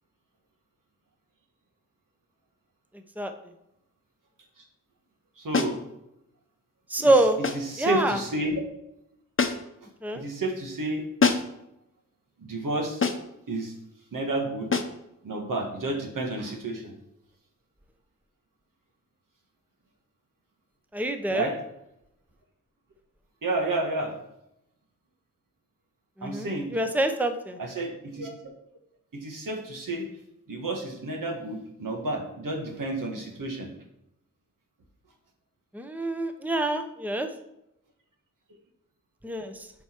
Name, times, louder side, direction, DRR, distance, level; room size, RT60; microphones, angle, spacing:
voice 1, 5.4-5.8 7.0-7.2 7.5-8.6 10.1-11.0 12.4-13.0 13.5-13.7 14.1-14.7 15.2-16.9 21.3-21.5 23.4-24.2 26.2-26.8 27.6-28.5 29.1-30.1 30.5-33.7, right 2 dB, 70° right, 2 dB, 1.7 m, -31 dB
sound 1, 5.5-5.8 7.4-7.7 9.4-9.8 11.2-11.6 13.0-13.4 14.7-15.0, left 4 dB, 40° left, 0.9 m, -26 dB
voice 2, 6.9-7.4 7.8-8.2 10.0-10.2 20.9-21.5 26.2-26.5 26.7-27.6 35.7-37.3 39.2-39.7, right 1 dB, 5° right, 7 dB, 0.9 m, -25 dB
7.7 x 4.8 x 4.5 m, 0.83 s
cardioid pair, 40°, 33 cm